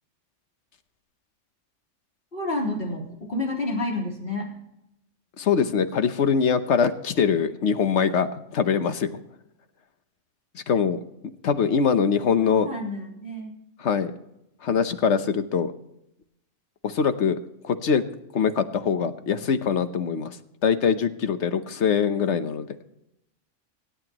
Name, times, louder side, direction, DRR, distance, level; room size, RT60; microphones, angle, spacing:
voice 1, 2.3-4.5 12.4-13.5, left 2 dB, 45° left, -4 dB, 4.1 m, -30 dB
voice 2, 5.4-9.2 10.5-11.0 11.4-12.7 13.8-14.1 14.6-15.7 16.8-17.4 17.6-18.0 18.3-20.4 20.6-22.7, left 6 dB, 65° left, 10 dB, 1.2 m, -23 dB
25.5 x 8.8 x 3.0 m, 0.84 s
omnidirectional pair, 1.3 m